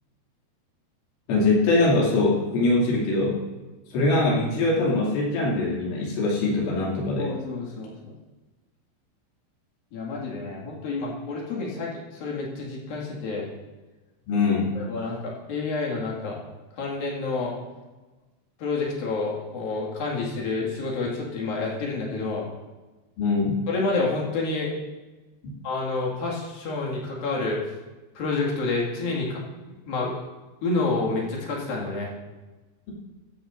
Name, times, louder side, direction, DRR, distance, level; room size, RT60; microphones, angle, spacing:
voice 1, 1.3-3.4 3.9-7.3 14.3-14.7 23.2-23.6, left 2 dB, 75° left, -4 dB, 5.1 m, -22 dB
voice 2, 7.2-7.9 9.9-13.5 14.8-16.4 16.8-17.6 18.6-22.5 23.7-24.7 25.6-27.6 28.2-29.4 29.7-30.1 30.6-32.1, left 3 dB, 55° left, -3 dB, 3.4 m, -29 dB
14.0 x 14.0 x 2.6 m, 1.2 s
omnidirectional pair, 5.7 m